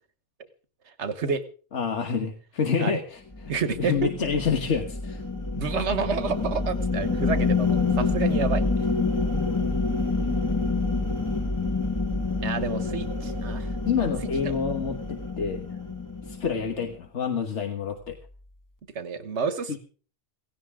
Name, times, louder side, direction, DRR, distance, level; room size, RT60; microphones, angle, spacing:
voice 1, 1.0-1.4 2.8-3.0 3.5-4.1 5.5-8.9 12.4-13.7 14.4-14.6 18.9-19.8, right 5 dB, 90° right, 11 dB, 1.5 m, -29 dB
voice 2, 1.7-3.5 3.8-5.2 10.1-11.1 13.9-15.8 16.2-18.2 19.7-19.8, left 6 dB, 85° left, 5 dB, 1.6 m, -28 dB
sound 1, 3.3-16.9, left 3 dB, 15° left, 1.3 m, -27 dB
17.0 x 17.0 x 3.7 m, 0.40 s
omnidirectional pair, 1.2 m